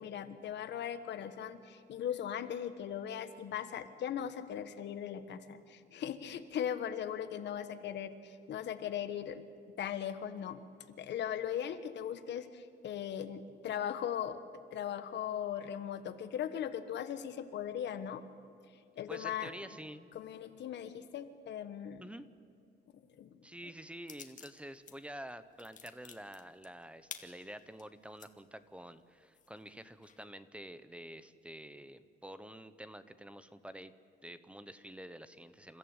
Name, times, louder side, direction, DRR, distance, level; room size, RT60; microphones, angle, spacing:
voice 1, 0.0-9.4 9.8-10.6 11.0-14.4 14.7-18.2 19.0-19.5 20.1-22.0 23.2-23.4, left 9 dB, 75° left, 10 dB, 1.3 m, -39 dB
voice 2, 19.1-20.1 22.0-22.3 23.4-33.9 34.2-35.8, right 1 dB, 5° right, 13 dB, 0.7 m, -48 dB
sound 1, 24.1-25.0 25.3-28.3 28.8-28.9 29.3-30.2, left 7 dB, 45° left, 1.6 m, -51 dB
28.5 x 14.5 x 8.8 m, 2.6 s
cardioid pair, 165°, 18 cm